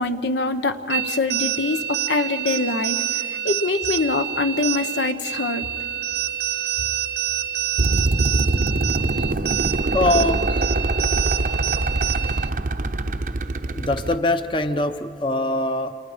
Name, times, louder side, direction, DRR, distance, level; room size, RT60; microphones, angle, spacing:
voice 1, 0.0-3.0 3.4-5.6, left 3 dB, 80° left, 9 dB, 1.0 m, -24 dB
sound 1, 0.9-12.5, right 10 dB, 75° right, 1.0 m, -27 dB
sound 2, 7.8-14.2, right 2 dB, 50° right, 0.7 m, -23 dB
voice 2, 9.9-10.7 11.3-11.6 13.7-15.9, left 2 dB, 30° left, 9 dB, 0.8 m, -23 dB
28.5 x 27.5 x 5.1 m, 2.2 s
head